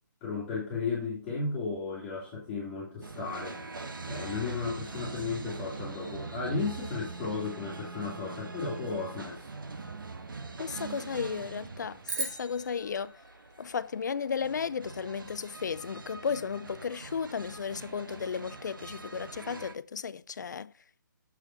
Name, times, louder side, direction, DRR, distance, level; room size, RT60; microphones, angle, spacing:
voice 1, 0.2-3.6 4.1-9.5, left 4 dB, 15° left, 2.0 m, -34 dB
sound 1, 3.0-19.7, right 4 dB, 85° right, 1.4 m, -43 dB
voice 2, 10.6-13.1 13.6-20.7, left 6 dB, 60° left, 0.4 m, -34 dB
sound 2, 12.1-14.5, right 3 dB, 65° right, 3.8 m, -39 dB
6.9 x 4.9 x 5.5 m
hypercardioid pair, 160°, 11 cm